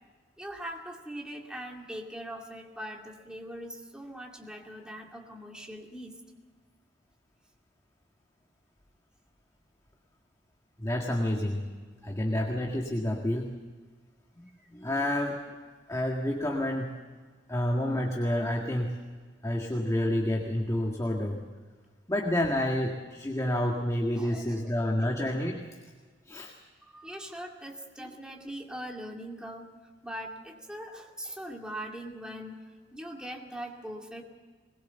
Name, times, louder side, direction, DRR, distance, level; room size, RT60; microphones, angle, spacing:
voice 1, 0.4-6.2 12.0-12.1 14.6-14.7 24.2-25.1 26.9-29.7 30.0-32.6 32.9-34.2, equal, 5° right, 0 dB, 2.3 m, -41 dB
voice 2, 10.8-11.7 12.0-13.6 14.4-15.4 15.9-16.9 17.5-19.0 19.4-21.4 22.1-25.6 26.3-26.5 28.0-28.1, left 1 dB, 15° left, 0 dB, 1.9 m, -29 dB
22.0 x 21.0 x 7.0 m, 1.5 s
head